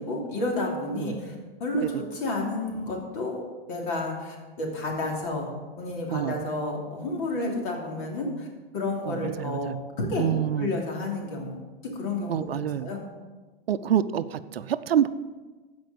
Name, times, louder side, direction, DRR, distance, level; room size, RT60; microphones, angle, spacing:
voice 1, 0.0-1.3 1.6-3.4 3.7-5.5 5.8-8.5 8.7-9.7 10.0-10.3 10.6-11.6 11.9-13.0, left 2 dB, 60° left, 0 dB, 3.0 m, -30 dB
voice 2, 9.1-9.8 10.2-10.7 12.3-12.9 13.7-15.1, right 10 dB, 80° right, 14 dB, 0.6 m, -27 dB
15.0 x 5.3 x 5.3 m, 1.3 s
hypercardioid pair, 105°, 29 cm